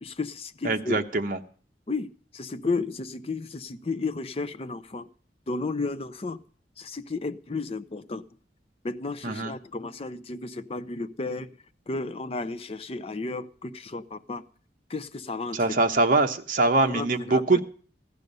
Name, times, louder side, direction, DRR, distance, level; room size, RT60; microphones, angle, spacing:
voice 1, 0.0-1.0 1.9-5.1 5.5-6.4 6.8-8.2 8.8-11.5 11.9-14.4 14.9-15.8 16.8-17.6, left 3 dB, 35° left, 12 dB, 0.5 m, -33 dB
voice 2, 0.6-1.4 9.2-9.6 15.5-17.6, right 3 dB, 50° right, 5 dB, 0.9 m, -23 dB
15.0 x 11.0 x 5.4 m, 0.44 s
head